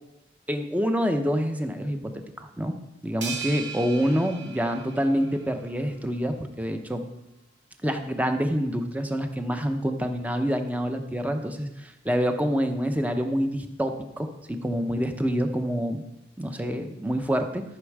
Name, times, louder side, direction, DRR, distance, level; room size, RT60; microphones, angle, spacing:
voice 1, 0.5-2.7 3.0-7.0 7.8-16.0 16.4-17.6, equal, 10° right, 6 dB, 0.8 m, -27 dB
sound 1, 3.2-5.7, right 6 dB, 80° right, 2.1 m, -37 dB
13.5 x 6.3 x 4.8 m, 0.90 s
head